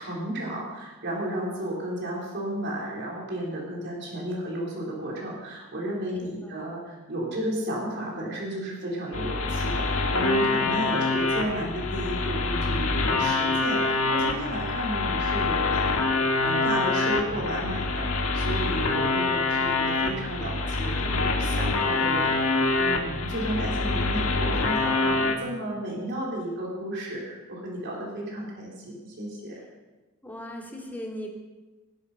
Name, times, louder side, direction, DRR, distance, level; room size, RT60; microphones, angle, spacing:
voice 1, 0.0-29.5, right 1 dB, 55° right, -3 dB, 3.8 m, -33 dB
voice 2, 6.2-6.5 30.2-31.3, equal, 10° left, -1 dB, 2.2 m, -38 dB
sound 1, 9.1-25.4, left 3 dB, 70° left, 1.6 m, -25 dB
18.5 x 8.5 x 5.6 m, 1.2 s
head